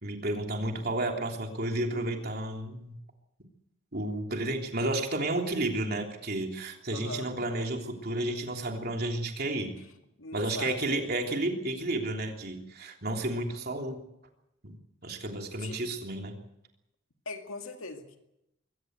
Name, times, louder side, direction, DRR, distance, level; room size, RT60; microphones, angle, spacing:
voice 1, 0.0-3.0 3.9-9.7 10.3-14.0 14.6-14.7 15.0-16.4, right 1 dB, 50° right, 3 dB, 3.3 m, -32 dB
voice 2, 6.9-7.3 9.8-9.9 10.2-11.1 15.6-15.8 17.3-18.2, left 3 dB, 90° left, 5 dB, 2.3 m, -40 dB
22.5 x 17.5 x 8.1 m, 0.86 s
head